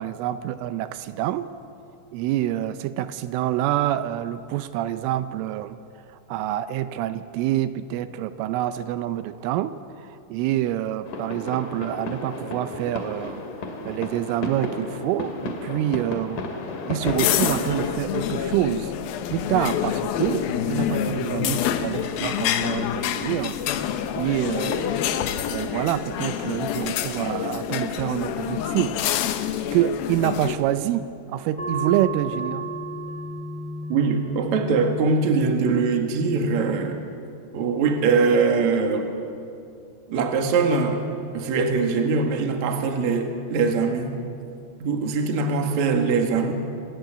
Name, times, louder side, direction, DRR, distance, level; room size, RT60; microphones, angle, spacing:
voice 1, 0.0-1.5 2.1-5.8 6.1-13.4 13.9-16.4 16.9-19.0 19.3-23.6 24.2-24.9 25.5-29.0 29.7-32.7, right 13 dB, 85° right, 12 dB, 3.2 m, -27 dB
sound 1, 11.1-18.0, left 3 dB, 50° left, 2.9 m, -33 dB
sound 2, 17.0-30.6, left 9 dB, 90° left, 2.1 m, -27 dB
Bell Echo, 31.6-36.7, right 2 dB, 5° left, 1.2 m, -34 dB
voice 2, 33.9-37.0 37.5-39.1 40.1-41.0 41.3-44.2 44.8-46.5, right 4 dB, 50° right, 4 dB, 2.4 m, -22 dB
26.0 x 19.0 x 9.1 m, 2.5 s
omnidirectional pair, 5.7 m